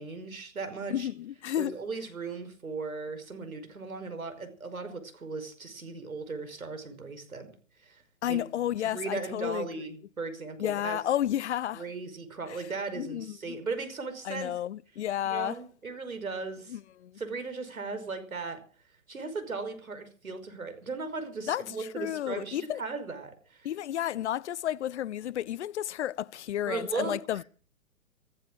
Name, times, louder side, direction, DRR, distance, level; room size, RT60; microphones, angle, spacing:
voice 1, 0.0-1.1 1.6-7.5 7.8-8.0 8.3-8.4 8.9-11.0 11.7-14.6 15.2-16.8 17.2-18.6 19.1-23.7 26.7-27.4, right 4 dB, 90° right, 5.4 m, -37 dB
voice 2, 0.9-1.7 8.2-9.7 10.6-11.8 13.0-13.6 14.2-15.6 16.7-17.2 21.4-22.8 23.6-27.4, left 11 dB, 55° left, 0.7 m, -32 dB
15.5 x 14.5 x 6.3 m
hypercardioid pair, 140°, 41 cm